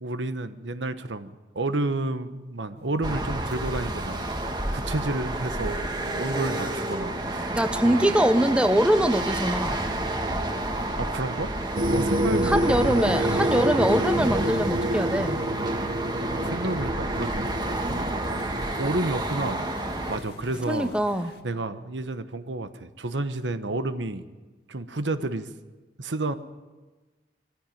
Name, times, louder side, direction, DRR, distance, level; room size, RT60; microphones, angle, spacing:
voice 1, 0.0-4.2 4.7-8.3 9.9-10.0 11.0-11.5 11.9-12.6 12.9-13.1 16.3-17.5 17.9-18.2 18.5-19.7 20.1-20.9 21.4-24.2 24.7-25.5 26.0-26.4, right 2 dB, 90° right, 11 dB, 1.2 m, -31 dB
sound 1, 2.8-21.4, left 1 dB, 65° left, 2.0 m, -48 dB
sound 2, 3.0-20.2, right 1 dB, 25° right, 1.6 m, -30 dB
voice 2, 7.5-9.8 12.4-15.4 20.7-21.3, equal, 5° right, 10 dB, 0.8 m, -23 dB
sound 3, 11.8-18.9, right 1 dB, 45° right, 1.0 m, -28 dB
23.0 x 15.0 x 9.2 m, 1.3 s
head